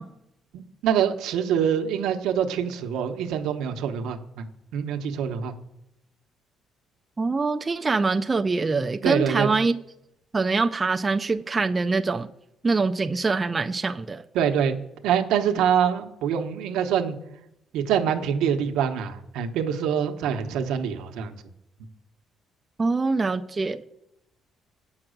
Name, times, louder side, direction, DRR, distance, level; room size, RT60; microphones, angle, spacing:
voice 1, 0.5-4.4 4.7-5.5 9.0-9.5 14.3-14.8 15.0-17.2 17.7-21.3, right 8 dB, 90° right, 0.9 m, -25 dB
voice 2, 7.2-9.7 10.3-12.3 12.6-14.2 22.8-23.8, right 3 dB, 20° right, 0.3 m, -24 dB
8.9 x 5.8 x 6.4 m
cardioid pair, 165°, 0 cm